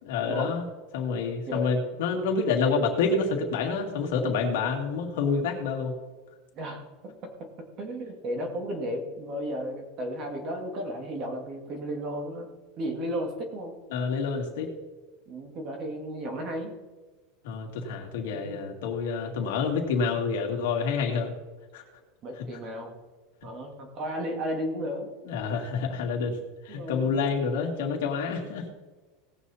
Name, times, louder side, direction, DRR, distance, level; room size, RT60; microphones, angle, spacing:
voice 1, 0.0-0.7 0.9-5.9 13.9-14.7 17.4-21.3 21.7-21.8 25.3-26.4 26.6-28.7, left 5 dB, 70° left, 1 dB, 2.3 m, -28 dB
voice 2, 1.9-2.3 6.5-12.5 12.8-13.7 15.3-16.7 18.3-18.6 22.2-22.9 23.4-25.1 26.7-27.2, equal, 30° right, 4 dB, 1.9 m, -34 dB
18.0 x 7.0 x 4.2 m, 1.3 s
supercardioid pair, 175°, 0 cm